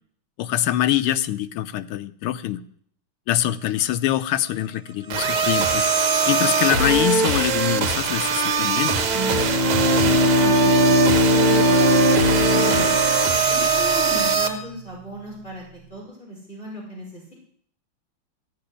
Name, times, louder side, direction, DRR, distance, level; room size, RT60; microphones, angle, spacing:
voice 1, 0.4-2.6 3.3-5.9 6.3-9.1, left 12 dB, 90° left, 12 dB, 1.7 m, -24 dB
sound 1, 5.1-14.5, right 5 dB, 75° right, 2.2 m, -21 dB
Bowed string instrument, 9.1-13.7, left 2 dB, 15° right, 1.7 m, -20 dB
voice 2, 9.3-10.6 11.0-13.0 13.5-17.3, equal, 25° left, -4 dB, 5.6 m, -36 dB
15.0 x 6.6 x 9.9 m, 0.63 s
omnidirectional pair, 2.4 m